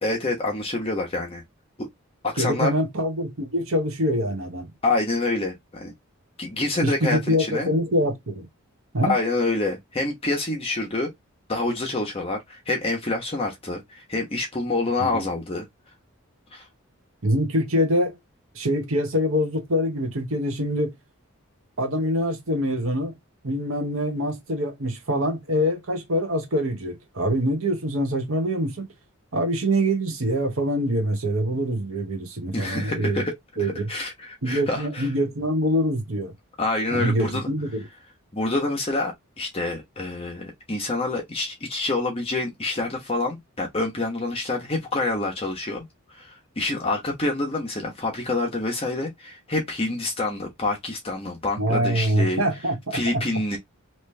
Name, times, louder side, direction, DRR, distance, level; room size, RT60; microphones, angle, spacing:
voice 1, 0.0-1.4 1.8-1.9 2.2-2.7 4.8-5.9 6.4-7.7 9.0-11.1 11.5-15.7 16.5-16.6 32.5-33.3 33.9-35.1 36.6-37.5 38.3-45.8 46.1-52.4 52.9-53.6, left 2 dB, 25° left, 1.0 m, -27 dB
voice 2, 2.4-4.7 6.8-8.5 8.9-9.1 15.0-15.2 17.2-18.1 18.5-20.9 21.8-23.1 23.4-28.8 29.3-33.2 33.6-33.9 34.4-36.3 36.9-37.8 51.6-53.2, equal, 65° right, 1.1 m, -24 dB
3.2 x 3.0 x 3.2 m
head